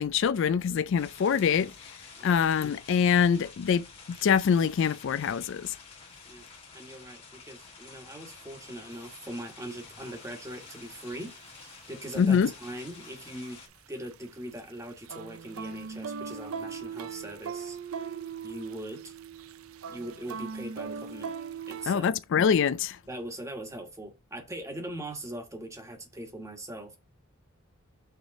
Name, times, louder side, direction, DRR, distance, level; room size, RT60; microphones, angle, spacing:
voice 1, 0.0-1.7 2.2-5.7 12.2-12.5 21.9-23.0, left 7 dB, 60° left, 0.3 m, -24 dB
sound 1, 1.0-13.7, left 4 dB, 30° left, 2.0 m, -50 dB
voice 2, 6.7-13.6 13.9-17.8 18.4-19.1 19.9-21.3 21.7-22.0 23.1-27.0, right 1 dB, 15° right, 1.3 m, -41 dB
sound 2, 8.9-9.0 9.7-9.8 10.6-11.8 12.0-12.3 12.6-14.2 14.5-21.9, right 6 dB, 80° right, 0.5 m, -39 dB
6.5 x 3.3 x 5.8 m
head